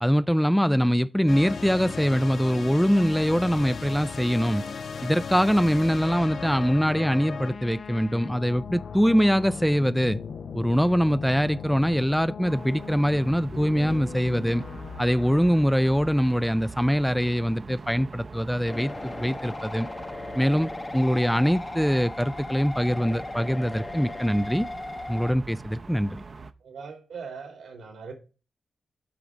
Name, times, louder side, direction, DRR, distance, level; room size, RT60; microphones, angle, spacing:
voice 1, 0.0-4.7 5.0-10.2 10.5-14.6 15.0-19.9 20.4-24.7 25.1-26.2, equal, ahead, 0.3 m, -23 dB
sound 1, 1.3-15.4, left 6 dB, 65° left, 0.7 m, -37 dB
sound 2, 12.5-26.5, right 4 dB, 50° right, 0.7 m, -43 dB
sound 3, 18.7-25.3, left 2 dB, 25° left, 0.8 m, -37 dB
voice 2, 26.6-28.1, right 5 dB, 85° right, 2.3 m, -40 dB
8.5 x 3.9 x 6.0 m
cardioid pair, 75°, 0 cm